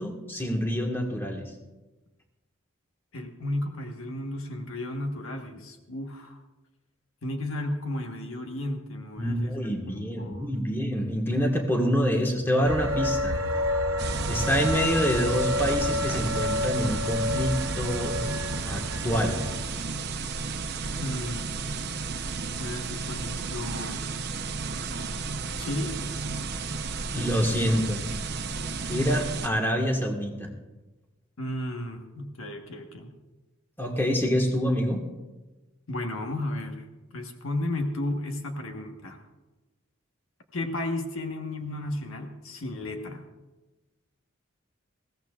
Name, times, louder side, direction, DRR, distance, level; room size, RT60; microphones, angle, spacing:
voice 1, 0.0-1.5 9.2-13.4 14.3-18.2 18.6-19.4 27.1-28.0 28.9-30.5 33.8-35.1, equal, 10° left, 1 dB, 1.5 m, -26 dB
voice 2, 3.1-6.4 7.2-10.5 21.0-21.4 22.6-24.0 25.6-26.0 31.4-33.1 35.9-36.8 37.1-39.2 40.5-43.3, left 1 dB, 80° left, 4 dB, 1.4 m, -33 dB
sound 1, 12.6-19.6, left 1 dB, 75° right, 1.0 m, -29 dB
sound 2, 14.0-29.5, right 4 dB, 50° right, 0.8 m, -33 dB
21.0 x 16.0 x 2.4 m, 1.1 s
head